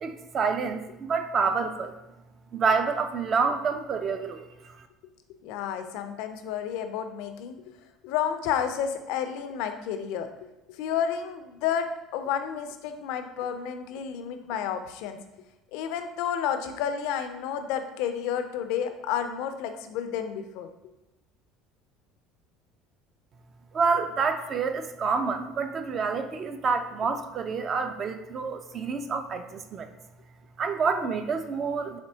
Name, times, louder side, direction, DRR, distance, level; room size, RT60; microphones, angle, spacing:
voice 1, 0.0-1.9 2.5-4.9 23.7-29.9 30.6-32.0, right 5 dB, 40° right, 8 dB, 0.4 m, -28 dB
voice 2, 5.4-7.6 8.0-10.3 10.7-15.2 15.7-20.7, left 8 dB, 75° left, 8 dB, 0.4 m, -31 dB
4.2 x 3.0 x 2.7 m, 0.96 s
supercardioid pair, 105°, 0 cm